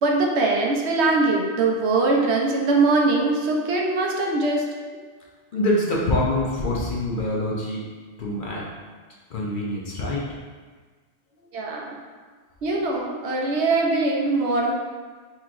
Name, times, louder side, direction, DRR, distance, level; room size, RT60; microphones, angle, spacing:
voice 1, 0.0-4.6 11.5-12.0 12.6-14.7, right 3 dB, 75° right, -1 dB, 0.9 m, -22 dB
voice 2, 5.5-7.9 8.2-8.6 9.3-10.3, left 1 dB, 50° left, -4 dB, 0.8 m, -25 dB
5.6 x 3.0 x 2.5 m, 1.5 s
omnidirectional pair, 1.2 m